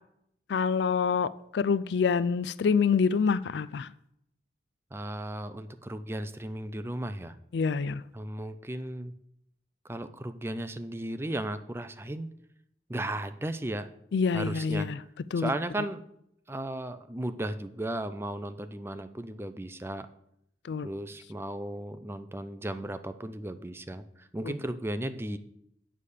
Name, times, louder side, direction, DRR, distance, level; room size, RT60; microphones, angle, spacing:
voice 1, 0.5-3.9 7.5-8.0 14.1-15.0 15.3-15.5 20.7-20.9, left 5 dB, 75° left, 0.4 m, -26 dB
voice 2, 4.9-7.4 8.1-9.1 9.8-12.3 12.9-13.9 14.3-14.9 15.4-16.0 16.5-20.1 20.8-25.4, right 1 dB, 15° right, 0.5 m, -35 dB
8.3 x 7.5 x 6.6 m
head